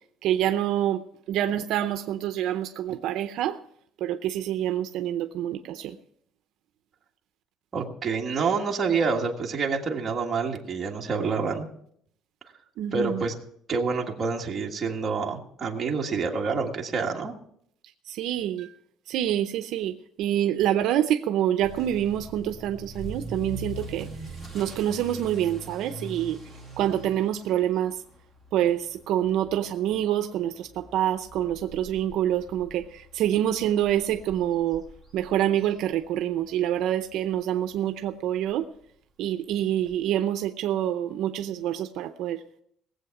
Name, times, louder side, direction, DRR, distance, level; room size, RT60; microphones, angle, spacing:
voice 1, 0.2-1.0 1.3-3.6 4.0-5.9 12.8-13.1 18.2-18.7 19.1-19.9 20.2-24.1 24.5-26.4 26.8-27.9 28.5-32.8 33.1-34.8 35.1-38.6 39.2-42.4, right 11 dB, 60° right, 8 dB, 0.6 m, -26 dB
voice 2, 7.7-11.7 12.9-13.3 13.7-17.4, right 4 dB, 20° right, 0 dB, 1.6 m, -27 dB
Motor vehicle (road) / Accelerating revving vroom, 21.6-36.5 36.8-37.2 37.7-37.8 38.1-38.2 38.4-38.5 39.8-39.9, right 1 dB, 10° left, 2.4 m, -43 dB
19.0 x 7.8 x 5.9 m, 0.68 s
cardioid pair, 180°, 0 cm